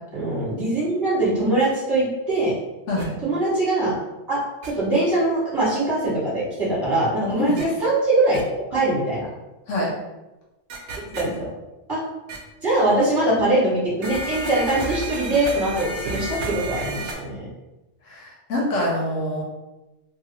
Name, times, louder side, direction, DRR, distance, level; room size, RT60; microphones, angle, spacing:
voice 1, 0.1-2.6 3.2-4.0 4.3-8.4 8.7-9.3 11.1-11.5 11.9-12.0 12.6-17.5, right 2 dB, 20° right, -9 dB, 1.3 m, -22 dB
sound 1, 3.0-3.1 4.6-4.7 7.6-7.7 8.3-8.4 10.7-11.2 12.3-12.4 14.0-17.1, right 3 dB, 60° right, 0.7 m, -31 dB
voice 2, 18.1-19.4, left 1 dB, 80° left, -4 dB, 1.1 m, -25 dB
2.9 x 2.4 x 2.8 m, 1.0 s
omnidirectional pair, 1.3 m